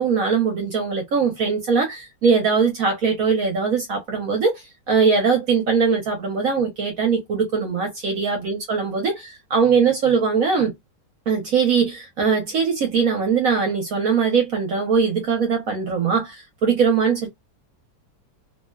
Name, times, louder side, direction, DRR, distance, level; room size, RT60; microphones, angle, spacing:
voice 1, 0.0-10.7 11.3-17.3, right 5 dB, 60° right, 1.0 m, -21 dB
3.0 x 2.1 x 2.2 m
omnidirectional pair, 2.0 m